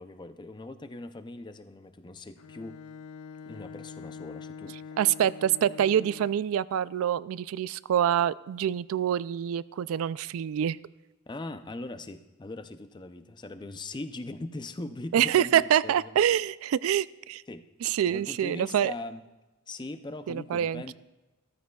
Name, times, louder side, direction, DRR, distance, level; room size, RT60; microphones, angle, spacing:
voice 1, 0.0-2.8 3.4-4.9 11.3-16.1 17.5-17.7 18.1-19.2 19.7-20.9, left 2 dB, 20° left, 10 dB, 0.4 m, -40 dB
Bowed string instrument, 2.4-6.5, left 6 dB, 80° left, 0.4 m, -44 dB
voice 2, 5.0-10.8 15.1-17.4 17.8-18.9 20.3-20.9, right 10 dB, 70° right, 19 dB, 0.3 m, -26 dB
14.5 x 14.0 x 2.3 m, 1.1 s
head